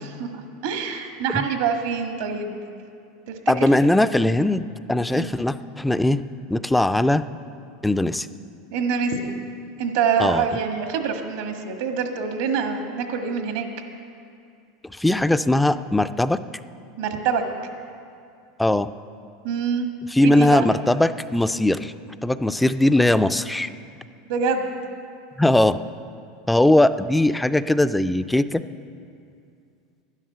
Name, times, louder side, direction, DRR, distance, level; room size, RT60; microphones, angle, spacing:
voice 1, 0.2-2.6 3.3-3.4 5.1-5.3 8.7-9.3 9.8-13.7 17.0-17.4 19.4-19.9 20.2-20.7 24.3-24.7, right 6 dB, 75° right, 5 dB, 1.5 m, -25 dB
voice 2, 3.5-6.2 6.5-7.3 7.8-8.3 10.2-10.5 14.9-16.4 18.6-18.9 20.1-21.9 22.2-23.7 25.4-25.8 26.5-28.6, left 1 dB, 5° left, 13 dB, 0.3 m, -20 dB
11.5 x 10.0 x 6.7 m, 2.4 s
supercardioid pair, 120°, 0 cm